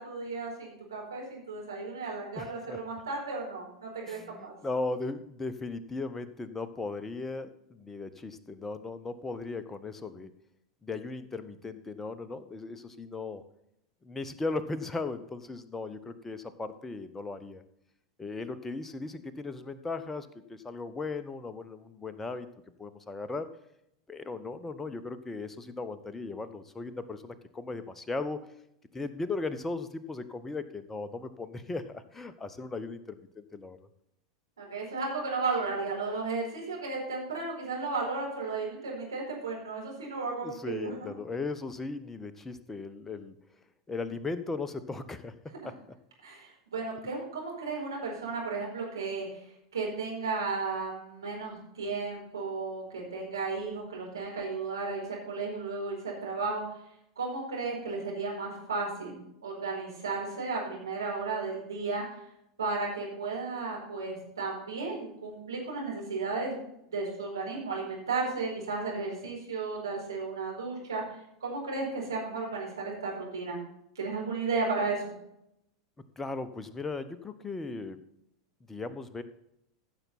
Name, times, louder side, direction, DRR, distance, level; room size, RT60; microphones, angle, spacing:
voice 1, 0.0-4.5 34.6-41.1 46.2-49.4 49.7-56.6 57.2-62.2 62.6-66.5 66.9-71.0 71.4-73.6 73.9-75.0, right 4 dB, 75° right, -3 dB, 4.5 m, -34 dB
voice 2, 2.4-2.8 4.1-10.3 10.8-13.4 14.0-17.6 18.2-22.5 22.8-23.5 24.1-28.4 28.9-33.8 40.4-43.4 43.9-45.3 45.6-45.8 76.2-78.1 78.7-79.2, left 3 dB, 15° left, 10 dB, 0.9 m, -37 dB
14.5 x 6.7 x 4.2 m, 0.78 s
figure-of-eight pair, 85°, 2 cm